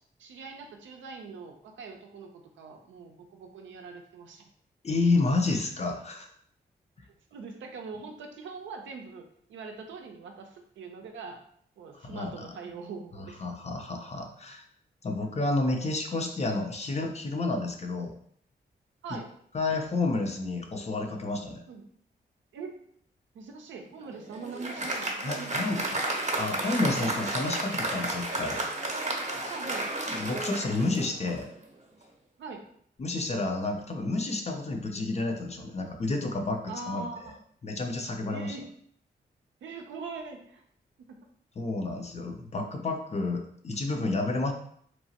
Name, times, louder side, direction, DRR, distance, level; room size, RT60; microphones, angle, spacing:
voice 1, 0.2-4.5 7.3-11.4 11.8-13.4 19.0-19.3 21.7-21.9 22.5-22.7 23.3-25.9 29.5-29.9 32.4-32.6 36.7-37.4 38.3-38.7 39.6-40.6 41.0-41.2, right 4 dB, 85° right, 3 dB, 0.5 m, -42 dB
voice 2, 4.8-6.3 12.0-12.5 13.4-14.6 15.0-18.1 19.5-21.6 25.2-25.8 26.3-28.6 30.1-31.5 33.0-36.6 36.9-37.0 37.6-38.6 41.6-44.5, left 2 dB, 35° left, 3 dB, 0.6 m, -30 dB
Applause, 24.0-31.5, right 2 dB, 35° right, 0.7 m, -32 dB
2.9 x 2.1 x 2.8 m, 0.64 s
cardioid pair, 50°, 19 cm